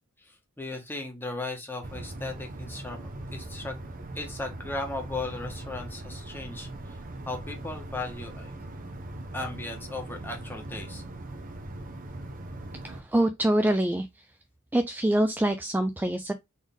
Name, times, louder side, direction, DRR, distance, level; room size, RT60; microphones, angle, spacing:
voice 1, 0.2-3.8 4.1-7.0 7.2-8.5 9.3-11.0, left 2 dB, 10° left, 1.3 m, -37 dB
sound 1, 1.8-13.0, right 1 dB, 40° right, 0.8 m, -40 dB
voice 2, 12.8-14.1 14.7-16.3, right 1 dB, 10° right, 0.3 m, -25 dB
4.1 x 3.4 x 3.6 m
head